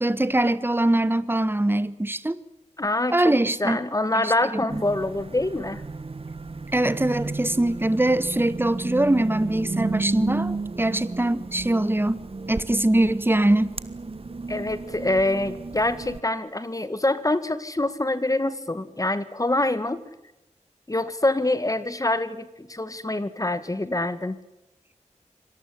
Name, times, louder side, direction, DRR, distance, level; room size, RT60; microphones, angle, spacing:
voice 1, 0.0-2.4 3.1-3.8 4.1-4.8 6.7-12.2 12.5-13.8, right 1 dB, 15° right, 1.4 m, -23 dB
voice 2, 2.8-3.3 3.6-5.8 14.5-20.0 20.9-24.4, left 2 dB, 25° left, 1.9 m, -25 dB
sound 1, 4.7-16.2, right 3 dB, 50° right, 1.4 m, -33 dB
25.5 x 19.0 x 8.7 m
wide cardioid pair, 60°, 13 cm